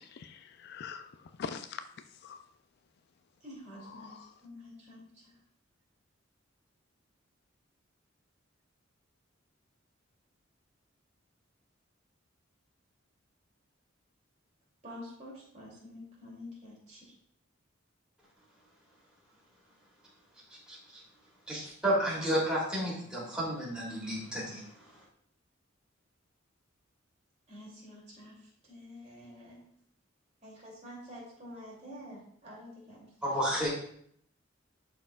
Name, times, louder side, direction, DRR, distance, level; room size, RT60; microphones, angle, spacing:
voice 1, 0.0-1.1 1.4-1.8 2.2-2.4 3.9-4.3, left 6 dB, 55° left, 0.3 m, -42 dB
voice 2, 3.4-4.1 4.4-5.0 14.8-17.0 27.5-28.4 28.7-29.7 30.4-33.6, left 1 dB, 35° right, 2.8 m, -48 dB
voice 3, 21.5-24.6 33.2-33.7, equal, 5° right, 2.9 m, -31 dB
11.5 x 4.4 x 2.4 m
head